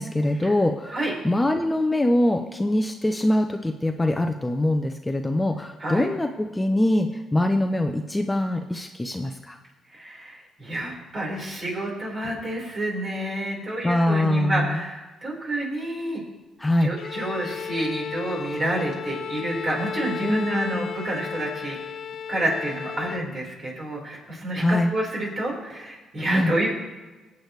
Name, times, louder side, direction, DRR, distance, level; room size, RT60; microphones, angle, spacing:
voice 1, 0.0-1.0 1.2-9.6 13.8-14.8 16.6-16.9 20.2-20.9 24.6-24.9 26.3-26.5, left 1 dB, 10° left, 5 dB, 0.7 m, -23 dB
voice 2, 9.9-16.2 16.8-21.8 22.3-26.7, right 1 dB, 40° right, -2 dB, 4.6 m, -29 dB
Bowed string instrument, 17.0-23.3, left 7 dB, 55° left, 0.6 m, -34 dB
21.5 x 8.3 x 3.3 m, 1.2 s
cardioid pair, 90°, 0 cm